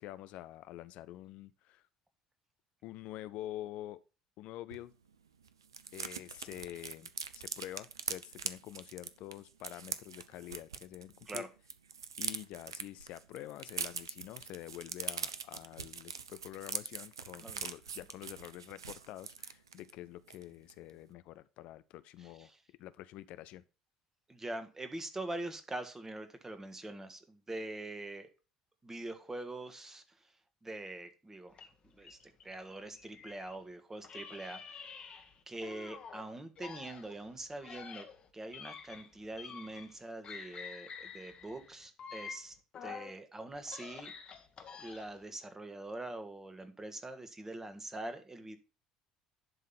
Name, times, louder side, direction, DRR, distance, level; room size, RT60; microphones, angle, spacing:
voice 1, 0.0-1.8 2.8-4.0 4.4-4.9 5.9-11.5 12.2-22.5 22.8-23.6, left 14 dB, 60° left, 0.4 m, -47 dB
sound 1, 4.7-4.8 5.1-5.2 5.4-11.4 11.7-19.9 20.3-20.4 20.7-21.0, right 6 dB, 90° right, 0.4 m, -42 dB
voice 2, 24.3-28.3 28.8-30.0 30.6-31.6 31.9-34.8 35.5-38.1 38.3-42.6 42.8-44.1 44.8-48.6, right 2 dB, 20° right, 1.6 m, -43 dB
sound 2, 31.5-33.6 34.0-36.2 36.6-40.0 40.2-43.2 43.5-45.2, left 6 dB, 45° left, 1.4 m, -48 dB
11.0 x 3.7 x 5.7 m
hypercardioid pair, 60°, 2 cm